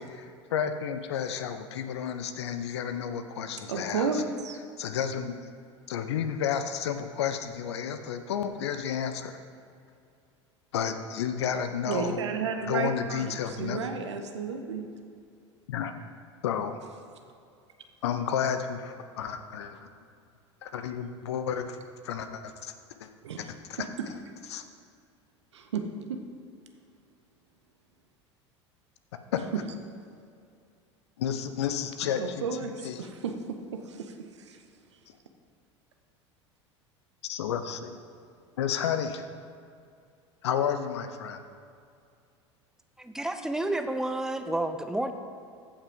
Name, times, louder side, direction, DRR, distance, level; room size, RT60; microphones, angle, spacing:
voice 1, 0.0-4.2 4.8-5.4 5.9-9.4 10.7-12.2 12.6-13.8 15.7-15.9 16.4-16.8 18.0-19.8 20.6-21.8 22.0-22.7 23.0-23.1 23.4-23.9 24.5-24.6 29.3-29.5 31.2-33.1 37.2-38.0 38.6-39.3 40.4-41.4, left 8 dB, 65° left, 9 dB, 0.7 m, -31 dB
voice 2, 3.7-4.6 11.9-14.8 23.2-23.4 23.8-23.9 25.5-25.8 26.1-26.2 29.5-29.6 32.2-34.1 34.5-34.6, right 5 dB, 70° right, 6 dB, 0.9 m, -32 dB
voice 3, 43.0-45.1, right 1 dB, 5° right, 8 dB, 0.7 m, -30 dB
15.0 x 5.7 x 3.8 m, 2.4 s
figure-of-eight pair, 75°, 15 cm